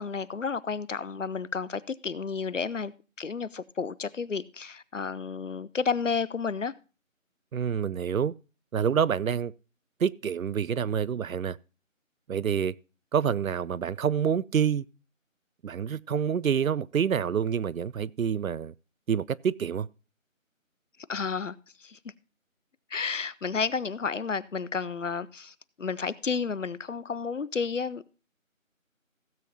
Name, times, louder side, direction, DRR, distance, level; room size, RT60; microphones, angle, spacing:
voice 1, 0.0-2.9 3.2-6.7 21.1-22.0 22.9-28.1, left 5 dB, 65° left, 0.6 m, -31 dB
voice 2, 7.5-8.3 8.7-9.5 10.0-11.6 12.3-12.7 13.1-14.8 15.6-18.7 19.1-19.9, right 7 dB, 80° right, 0.6 m, -27 dB
16.5 x 7.8 x 2.7 m
figure-of-eight pair, 175°, 41 cm